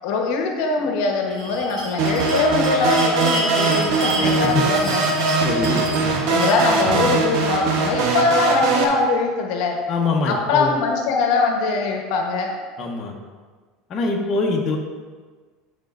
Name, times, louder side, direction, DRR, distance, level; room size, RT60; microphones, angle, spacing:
voice 1, 0.0-5.0 5.7-5.8 6.3-9.8 10.3-12.5, left 4 dB, 70° left, 2 dB, 1.0 m, -22 dB
Bell, 1.3-8.5, right 1 dB, 45° right, 2.2 m, -31 dB
sound 1, 2.0-8.8, right 3 dB, 65° right, 1.0 m, -21 dB
voice 2, 4.2-4.6 5.0-5.1 5.4-5.9 9.9-10.8 12.8-13.1 13.9-14.8, left 3 dB, 35° left, -1 dB, 1.0 m, -23 dB
11.0 x 5.2 x 2.5 m, 1.5 s
supercardioid pair, 135°, 0 cm